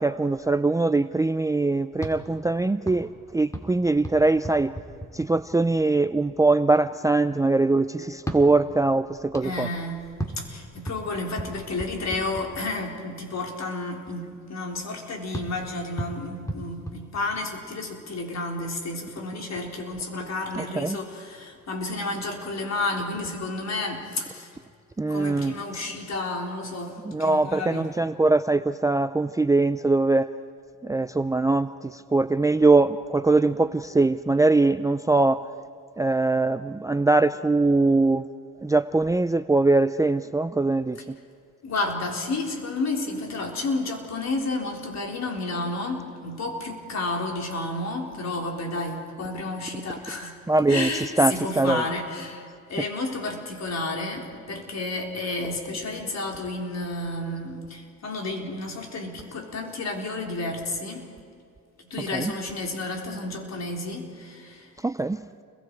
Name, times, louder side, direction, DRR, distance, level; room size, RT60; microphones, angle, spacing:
voice 1, 0.0-4.7 5.1-9.7 20.6-21.0 25.0-25.6 27.0-30.3 30.8-35.4 36.0-38.3 38.6-41.0 50.5-50.9 51.2-51.8 62.1-62.3 64.8-65.2, right 3 dB, 10° right, 13 dB, 0.5 m, -22 dB
sound 1, 1.9-5.8 8.1-13.0 15.3-17.8, right 1 dB, 10° left, 2.7 m, -38 dB
voice 2, 9.4-10.0 10.4-24.6 25.1-27.9 41.6-50.4 50.7-61.1 61.8-64.7, left 2 dB, 50° left, 1 dB, 4.1 m, -31 dB
30.0 x 22.0 x 4.7 m, 2.3 s
cardioid pair, 85°, 33 cm